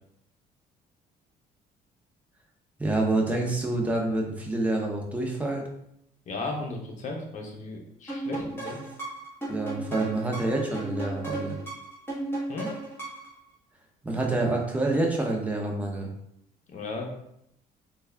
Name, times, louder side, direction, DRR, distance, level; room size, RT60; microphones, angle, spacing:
voice 1, 2.8-5.7 9.5-11.6 14.0-16.1, right 2 dB, 10° right, -1 dB, 0.7 m, -27 dB
voice 2, 6.3-8.8 12.5-12.7 16.7-17.1, left 3 dB, 45° left, 2 dB, 0.8 m, -35 dB
sound 1, 8.1-13.4, right 2 dB, 15° left, 1.2 m, -35 dB
3.4 x 2.3 x 3.3 m, 0.75 s
cardioid pair, 110°, 17 cm